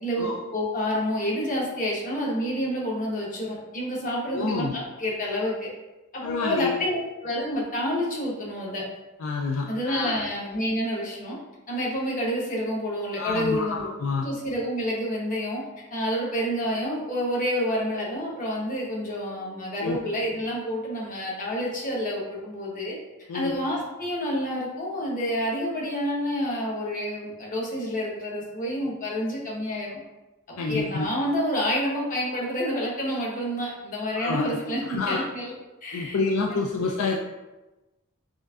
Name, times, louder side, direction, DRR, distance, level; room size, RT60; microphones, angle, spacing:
voice 1, 0.0-5.7 6.1-8.8 9.7-11.4 11.7-13.9 14.2-15.6 15.9-23.0 23.3-30.0 30.7-35.5 35.8-36.2 36.5-36.6, equal, 40° left, -4 dB, 1.0 m, -28 dB
voice 2, 4.3-4.7 6.2-6.7 9.2-10.2 13.2-14.3 19.8-20.0 23.3-23.5 30.6-31.1 34.2-34.5 34.8-35.3 35.9-37.2, left 4 dB, 65° left, 0 dB, 0.3 m, -28 dB
6.2 x 2.5 x 2.3 m, 1.1 s
head